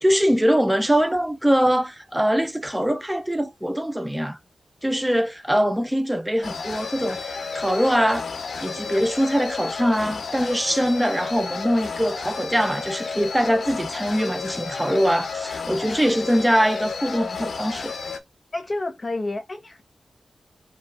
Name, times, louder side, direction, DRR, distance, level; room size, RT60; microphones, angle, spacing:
voice 1, 0.0-4.4 4.8-8.3 8.6-17.9, equal, 5° right, 0.4 m, -22 dB
sound 1, 6.4-18.2, left 5 dB, 65° left, 0.6 m, -32 dB
voice 2, 18.5-19.8, left 2 dB, 30° left, 0.8 m, -29 dB
5.1 x 2.3 x 3.3 m
wide cardioid pair, 155°, 0 cm